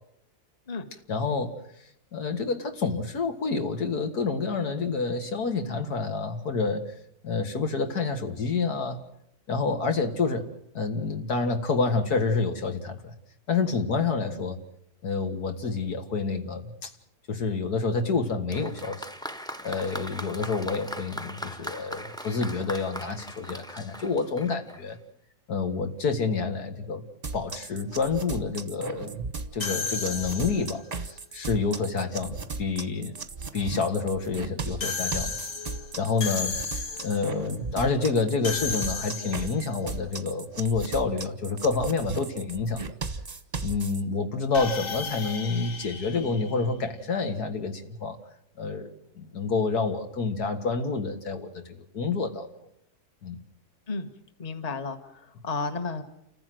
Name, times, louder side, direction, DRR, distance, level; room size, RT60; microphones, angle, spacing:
voice 1, 1.1-1.6 2.1-6.8 7.2-9.0 9.5-10.5 10.7-13.1 13.5-14.6 15.0-16.9 17.3-19.1 19.6-25.0 25.5-27.0 27.3-29.1 29.5-33.2 33.5-35.4 36.0-42.8 43.6-48.2 48.6-48.9 49.2-52.5 53.2-53.4, left 4 dB, 75° left, 6 dB, 2.3 m, -28 dB
Applause, 18.5-24.9, equal, 5° left, 0.7 m, -39 dB
sound 1, 27.2-44.0, right 4 dB, 30° right, 1.0 m, -37 dB
sound 2, 29.6-30.9 34.8-37.3 38.4-39.7 44.5-47.1, left 5 dB, 60° left, 1.9 m, -34 dB
voice 2, 54.4-56.0, left 4 dB, 25° left, 8 dB, 1.4 m, -33 dB
28.5 x 15.0 x 7.7 m, 0.74 s
omnidirectional pair, 1.6 m